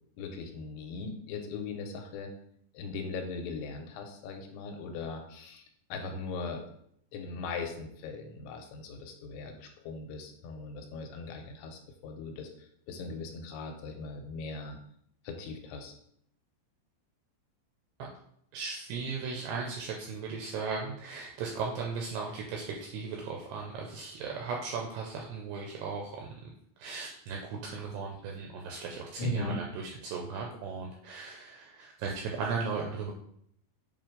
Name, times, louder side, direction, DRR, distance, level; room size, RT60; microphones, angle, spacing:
voice 1, 0.2-2.3 2.7-5.6 5.9-6.6 7.1-12.5 12.9-14.8 15.2-15.9 29.2-29.6, left 3 dB, 85° left, 4 dB, 3.0 m, -39 dB
voice 2, 18.5-26.5 26.8-33.1, right 4 dB, 85° right, 0 dB, 2.4 m, -37 dB
7.5 x 2.5 x 5.0 m, 0.70 s
omnidirectional pair, 5.5 m